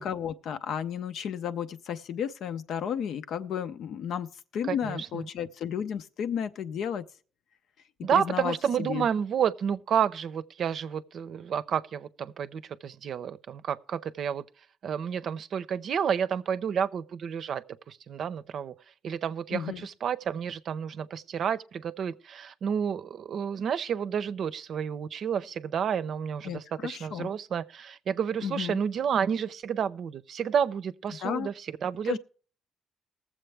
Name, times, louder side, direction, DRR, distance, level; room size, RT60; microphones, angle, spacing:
voice 1, 0.0-7.1 8.0-9.1 19.5-19.9 26.4-27.3 28.4-28.8 31.2-31.5 32.1-32.2, left 8 dB, 75° left, 0.7 m, -33 dB
voice 2, 4.6-5.3 8.0-14.4 14.8-18.7 19.0-32.2, right 8 dB, 60° right, 0.6 m, -30 dB
19.5 x 7.4 x 3.3 m
cardioid pair, 90°, 0 cm